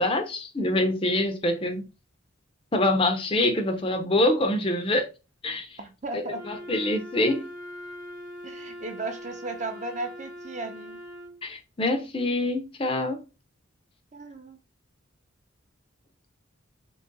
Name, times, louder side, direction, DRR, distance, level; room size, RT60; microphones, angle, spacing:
voice 1, 0.0-1.9 2.7-5.1 5.4-5.7 6.1-7.5 11.4-13.2, left 1 dB, 25° left, 0.6 m, -25 dB
voice 2, 5.8-6.4 8.4-11.0 14.1-14.6, right 2 dB, 35° right, 0.6 m, -35 dB
Wind instrument woodwind instrument, 6.3-11.4, left 1 dB, 70° left, 1.0 m, -41 dB
3.8 x 3.0 x 3.8 m
head